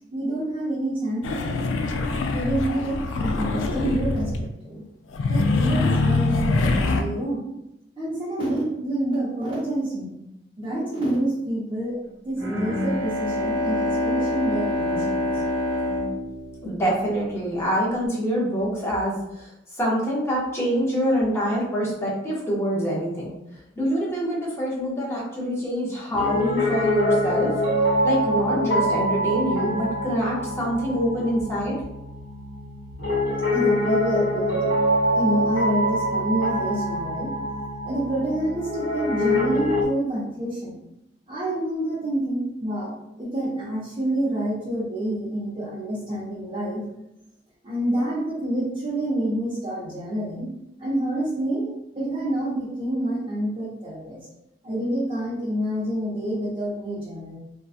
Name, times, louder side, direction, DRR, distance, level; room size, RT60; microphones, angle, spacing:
voice 1, 0.1-1.8 2.3-4.8 5.3-7.4 8.0-10.1 10.6-12.0 12.2-15.4 33.5-34.7 35.1-37.3 37.8-40.8 41.3-46.8 47.6-50.5 50.8-51.7 51.9-54.3 54.6-57.4, right 1 dB, 30° right, -8 dB, 0.6 m, -28 dB
sound 1, 1.2-4.4 5.1-7.0, left 3 dB, 80° left, 0.3 m, -23 dB
Bowed string instrument, 12.4-17.3, left 1 dB, 85° right, 0.9 m, -26 dB
voice 2, 16.6-19.5 19.8-23.4 23.8-27.5 28.0-31.8, equal, 15° left, -6 dB, 0.6 m, -25 dB
Piano, 26.1-39.8, equal, 65° left, 1.0 m, -25 dB
2.6 x 2.2 x 2.4 m, 0.85 s
head